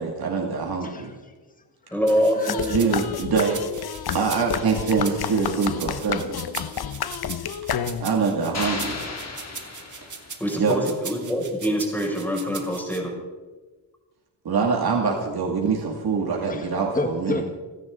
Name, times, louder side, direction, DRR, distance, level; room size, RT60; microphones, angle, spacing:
voice 1, 0.0-1.1 2.7-3.6 4.1-6.4 8.0-9.0 10.6-10.8 14.4-17.4, right 5 dB, 60° right, 0 dB, 2.5 m, -24 dB
voice 2, 0.8-2.0 2.3-2.8 16.5-17.4, left 2 dB, 20° left, 5 dB, 1.5 m, -32 dB
voice 3, 1.9-2.9 10.4-13.1, equal, 5° left, -2 dB, 6.1 m, -25 dB
sound 1, 2.1-13.0, right 5 dB, 45° right, 1.9 m, -39 dB
sound 2, 2.5-8.3, left 8 dB, 65° left, 0.9 m, -30 dB
sound 3, 8.5-10.7, left 3 dB, 40° left, 2.7 m, -34 dB
30.0 x 10.0 x 3.9 m, 1.3 s
cardioid pair, 95°, 41 cm